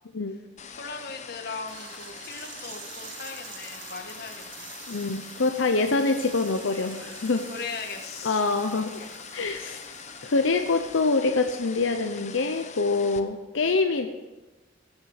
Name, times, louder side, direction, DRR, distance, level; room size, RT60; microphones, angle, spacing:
sound 1, 0.6-13.2, left 6 dB, 40° left, 0.8 m, -44 dB
voice 1, 0.7-4.8 7.5-8.4 8.7-9.2, left 4 dB, 55° left, 4 dB, 1.6 m, -39 dB
sound 2, 1.7-11.5, right 7 dB, 80° right, 1.5 m, -46 dB
voice 2, 4.9-7.5 8.2-8.9 9.3-9.8 10.2-14.1, left 3 dB, 85° left, 6 dB, 0.8 m, -25 dB
15.5 x 7.2 x 6.6 m, 1.1 s
head